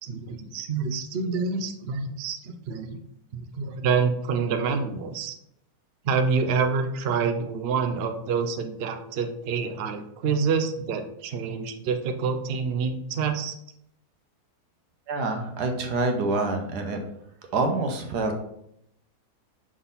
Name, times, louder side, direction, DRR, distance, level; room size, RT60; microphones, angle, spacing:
voice 1, 0.0-3.0 3.6-5.3 6.0-13.5, right 5 dB, 60° right, 6 dB, 0.6 m, -27 dB
voice 2, 15.1-17.0 17.5-18.4, right 3 dB, 80° right, 4 dB, 1.5 m, -26 dB
6.2 x 3.8 x 4.0 m, 0.75 s
omnidirectional pair, 1.7 m